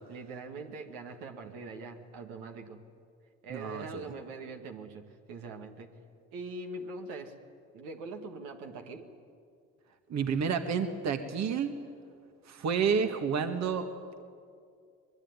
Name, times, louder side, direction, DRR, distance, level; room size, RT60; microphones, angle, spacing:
voice 1, 0.1-2.8 3.4-5.9 6.3-7.4 7.7-9.1, right 3 dB, 85° right, 4 dB, 2.1 m, -42 dB
voice 2, 3.5-4.1 10.1-11.7 12.5-13.8, right 6 dB, 60° right, 6 dB, 1.8 m, -30 dB
22.5 x 21.5 x 9.7 m, 2.2 s
supercardioid pair, 70°, 31 cm